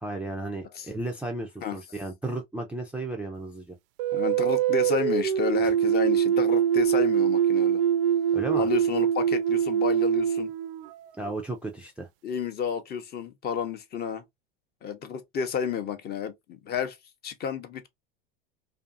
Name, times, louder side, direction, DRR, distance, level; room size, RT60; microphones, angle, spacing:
voice 1, 0.0-3.8 5.6-5.7 8.3-8.7 11.2-12.1, right 2 dB, 5° right, 0.3 m, -34 dB
sound 1, 4.0-11.3, right 9 dB, 65° right, 0.4 m, -24 dB
voice 2, 4.1-7.8 8.6-10.5 12.2-14.2 14.8-17.0 17.2-17.9, left 7 dB, 35° left, 0.6 m, -31 dB
2.5 x 2.5 x 2.4 m
hypercardioid pair, 90°, 30 cm